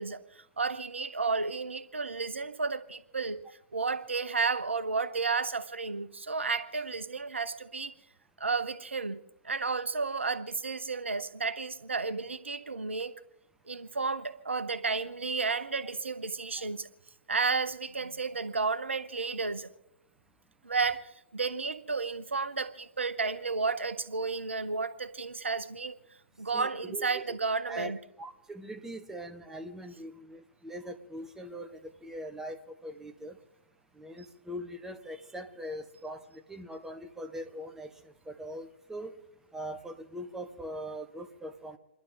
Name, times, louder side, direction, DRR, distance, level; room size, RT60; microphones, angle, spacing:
voice 1, 0.0-3.4 3.7-7.9 8.4-9.2 9.4-13.2 13.7-16.9 17.3-19.7 20.6-26.0 26.4-28.0, right 4 dB, 85° right, 12 dB, 0.9 m, -32 dB
voice 2, 26.5-27.4 27.7-27.9 28.2-33.4 34.0-39.1 39.5-41.8, right 1 dB, 5° right, 6 dB, 1.4 m, -41 dB
28.5 x 12.0 x 3.9 m, 0.89 s
figure-of-eight pair, 115°, 6 cm